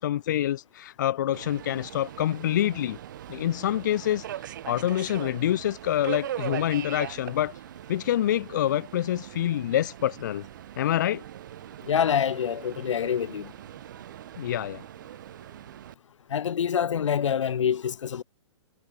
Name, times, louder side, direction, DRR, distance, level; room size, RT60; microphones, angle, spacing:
voice 1, 0.0-3.0 3.3-4.2 4.6-7.5 7.9-10.4 10.8-11.2 14.4-14.8, left 12 dB, 40° left, 0.7 m, -26 dB
Subway metro underground, 1.3-15.9, right 12 dB, 40° right, 0.9 m, -40 dB
voice 2, 11.8-13.5 16.3-18.2, left 8 dB, 75° left, 1.9 m, -26 dB
hypercardioid pair, 175°, 16 cm